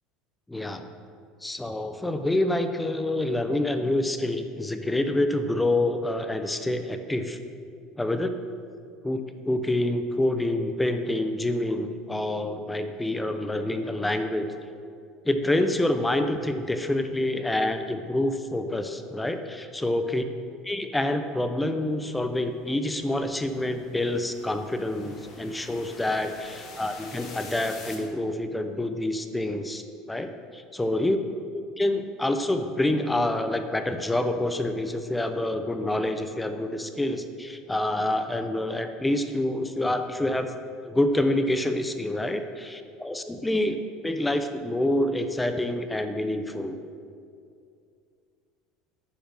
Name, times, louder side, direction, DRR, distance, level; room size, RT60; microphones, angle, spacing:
voice 1, 0.5-0.8 1.4-7.4 8.0-8.3 9.0-14.5 15.2-20.2 20.6-29.8 30.1-31.2 31.8-40.5 40.9-46.8, left 1 dB, 10° left, 8 dB, 0.8 m, -27 dB
sound 1, 22.0-28.0, left 3 dB, 45° left, 2.0 m, -46 dB
9.9 x 6.8 x 6.4 m, 2.4 s
supercardioid pair, 100°, 0 cm